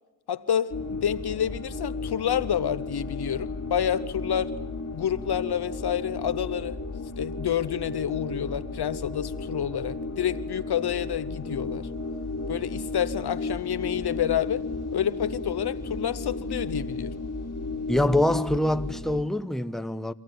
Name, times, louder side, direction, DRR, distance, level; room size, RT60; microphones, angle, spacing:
voice 1, 0.3-4.5 4.9-6.8 7.2-11.9 12.5-14.7 14.9-17.1, left 9 dB, 80° left, 1.0 m, -28 dB
sound 1, 0.7-19.2, left 3 dB, 40° left, 2.7 m, -34 dB
voice 2, 17.9-20.1, left 1 dB, ahead, 1.0 m, -25 dB
25.0 x 16.0 x 9.5 m
cardioid pair, 50°, 39 cm